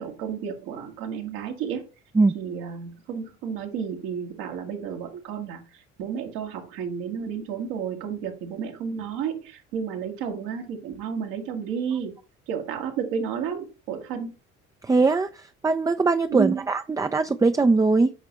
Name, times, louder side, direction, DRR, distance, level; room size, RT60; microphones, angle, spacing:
voice 1, 0.0-1.8 2.3-12.1 12.5-14.3 16.3-16.6, right 7 dB, 75° right, 1.7 m, -31 dB
voice 2, 14.8-18.1, right 3 dB, 10° right, 0.4 m, -21 dB
9.1 x 5.0 x 3.0 m
hypercardioid pair, 55°, 35 cm